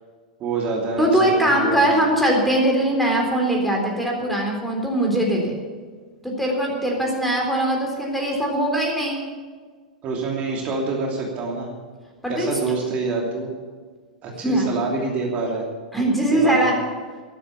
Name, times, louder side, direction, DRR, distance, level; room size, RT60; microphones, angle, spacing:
voice 1, 0.4-2.1 10.0-11.7 12.3-13.5 14.2-15.6 16.3-16.7, right 3 dB, 30° right, -1 dB, 2.9 m, -26 dB
voice 2, 1.0-5.6 6.2-9.2 12.2-12.5 14.4-14.7 15.9-16.7, right 1 dB, ahead, -1 dB, 3.7 m, -21 dB
12.5 x 12.0 x 7.2 m, 1.5 s
figure-of-eight pair, 100°, 4 cm